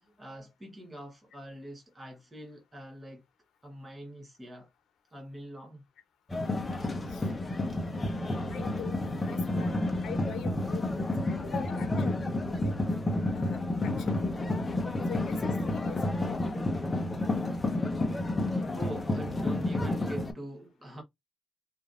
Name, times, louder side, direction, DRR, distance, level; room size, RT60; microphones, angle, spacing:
voice 1, 0.2-3.2 3.6-4.7 5.1-5.8 13.8-14.1 15.1-15.2 16.9-17.2 18.2-21.0, right 1 dB, 20° right, 1.0 m, -44 dB
sound 1, 6.3-20.3, left 2 dB, 25° left, 0.7 m, -30 dB
voice 2, 8.4-9.0 9.2-9.8 10.0-12.8 13.3-14.6 15.1-16.6, left 7 dB, 80° left, 0.9 m, -43 dB
3.0 x 2.5 x 2.5 m
cardioid pair, 95°, 0 cm